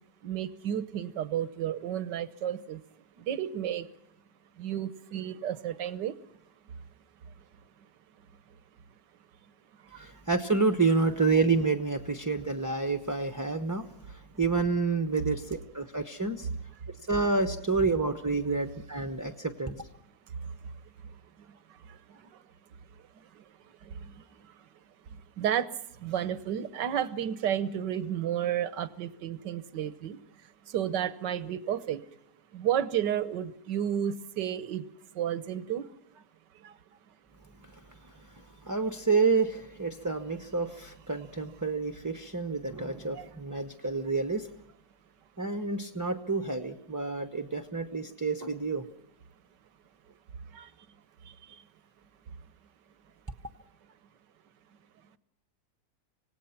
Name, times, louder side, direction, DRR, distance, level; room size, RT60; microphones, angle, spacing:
voice 1, 0.2-2.8 3.2-3.9 4.6-6.2 9.9-10.1 19.2-19.3 20.4-20.5 21.7-22.3 23.3-23.4 23.8-24.5 25.4-30.2 30.7-32.0 32.5-34.9 35.1-35.9 36.6-36.8 43.1-43.3 50.5-50.7 51.2-51.6, right 10 dB, 85° right, 15 dB, 1.7 m, -32 dB
voice 2, 10.0-16.5 17.1-19.9 38.3-44.5 45.4-48.8, right 4 dB, 15° right, 9 dB, 0.8 m, -29 dB
26.5 x 18.0 x 5.8 m, 0.72 s
omnidirectional pair, 1.8 m